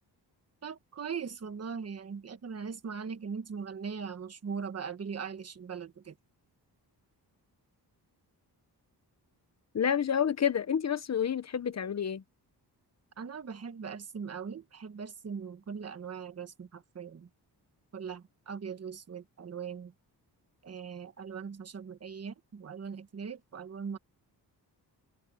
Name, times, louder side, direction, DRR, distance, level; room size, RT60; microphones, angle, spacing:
voice 1, 0.6-6.1 13.2-17.3 17.9-19.9 20.6-24.0, right 6 dB, 40° right, 1.4 m, -40 dB
voice 2, 9.7-12.2, left 8 dB, 40° left, 0.9 m, -29 dB
wide cardioid pair, 160°, 40 cm